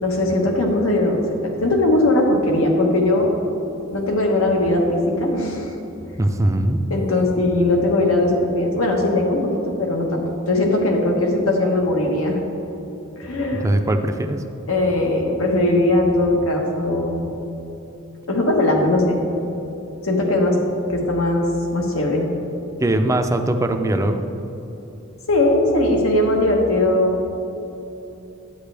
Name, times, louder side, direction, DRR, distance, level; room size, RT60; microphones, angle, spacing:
voice 1, 0.0-3.3 3.9-5.7 6.9-12.4 13.1-13.7 14.7-17.2 18.3-19.2 20.0-20.6 20.9-22.3 25.3-27.4, left 1 dB, 80° left, 1 dB, 1.3 m, -19 dB
voice 2, 6.2-6.9 13.5-14.4 20.5-20.6 22.8-24.3, right 1 dB, 15° right, 6 dB, 0.5 m, -21 dB
10.0 x 8.8 x 3.4 m, 3.0 s
head